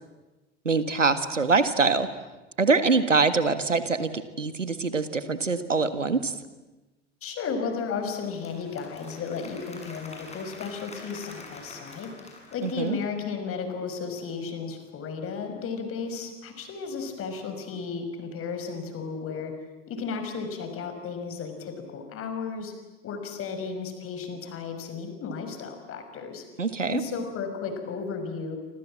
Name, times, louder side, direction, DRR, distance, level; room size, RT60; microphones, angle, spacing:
voice 1, 0.7-2.1 2.6-6.3 12.6-13.0 26.6-27.0, right 4 dB, 85° right, 12 dB, 1.7 m, -24 dB
voice 2, 7.2-12.1 12.5-19.5 19.9-22.7 23.0-26.4 26.9-28.6, left 5 dB, 35° left, 7 dB, 5.7 m, -34 dB
Applause / Crowd, 7.8-13.2, left 2 dB, 20° left, 7.8 m, -46 dB
28.5 x 26.5 x 7.5 m, 1.1 s
figure-of-eight pair, 80°, 36 cm